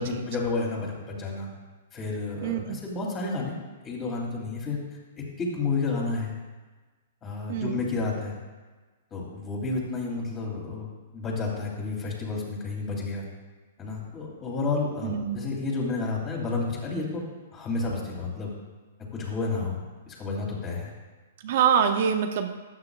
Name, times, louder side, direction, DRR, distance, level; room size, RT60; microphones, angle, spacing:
voice 1, 0.0-1.5 1.9-4.8 5.2-6.3 7.2-8.4 9.1-10.9 11.1-13.3 13.8-17.2 17.5-18.5 19.1-19.8 20.1-20.9, left 3 dB, 25° left, -3 dB, 3.2 m, -31 dB
voice 2, 2.4-2.8 7.5-7.8 15.0-15.4 21.4-22.5, right 7 dB, 55° right, 7 dB, 0.7 m, -25 dB
13.0 x 9.1 x 2.5 m, 1.3 s
hypercardioid pair, 120°, 0 cm